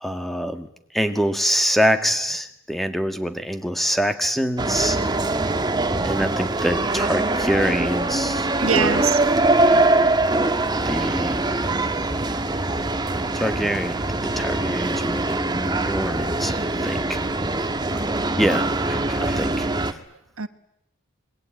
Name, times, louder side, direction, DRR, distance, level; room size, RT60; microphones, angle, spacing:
voice 1, 0.0-0.7 0.9-5.0 6.0-9.1 10.9-11.5 13.3-14.0 14.2-17.2 18.4-19.7, equal, ahead, 8 dB, 1.9 m, -25 dB
sound 1, 4.6-19.9, right 2 dB, 20° right, 1.5 m, -23 dB
voice 2, 8.1-9.2 17.0-17.1 17.9-18.0 19.1-19.6 20.1-20.5, right 6 dB, 80° right, 12 dB, 1.4 m, -28 dB
26.0 x 22.0 x 9.2 m, 0.78 s
head